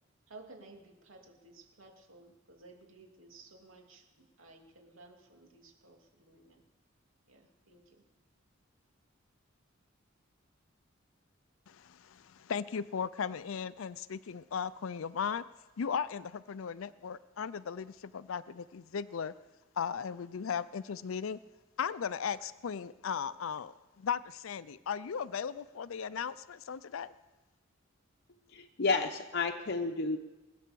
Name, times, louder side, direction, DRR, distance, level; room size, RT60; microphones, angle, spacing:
voice 1, 0.3-6.6 7.3-8.0, right 2 dB, 80° right, 2 dB, 2.9 m, -56 dB
voice 2, 12.1-15.4 15.8-19.3 19.8-21.4 21.8-27.1, left 7 dB, 85° left, 16 dB, 0.5 m, -37 dB
voice 3, 28.5-30.2, left 4 dB, 55° left, 4 dB, 0.9 m, -31 dB
21.0 x 8.5 x 6.9 m, 1.1 s
head